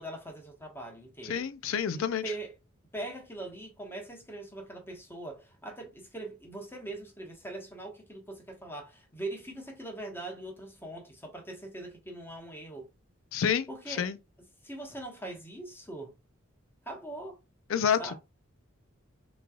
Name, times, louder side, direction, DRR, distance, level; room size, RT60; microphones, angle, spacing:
voice 1, 0.0-1.4 1.9-2.5 2.9-12.9 13.7-14.1 14.6-16.1 16.8-17.4 18.0-18.2, right 2 dB, 10° left, 1.0 m, -41 dB
voice 2, 1.2-2.2 13.3-14.2 17.7-18.2, left 7 dB, 75° left, 0.4 m, -29 dB
3.8 x 3.1 x 2.3 m
head